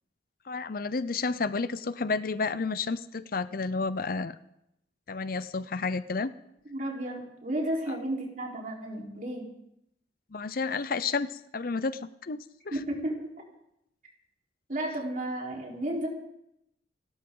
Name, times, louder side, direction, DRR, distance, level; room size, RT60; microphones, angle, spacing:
voice 1, 0.5-4.4 5.1-6.3 10.3-12.4 12.7-12.8, left 4 dB, 55° left, 14 dB, 0.6 m, -31 dB
voice 2, 6.6-9.4 12.7-13.3 14.7-16.1, right 1 dB, 45° right, -1 dB, 4.0 m, -33 dB
29.0 x 12.5 x 3.9 m, 0.80 s
head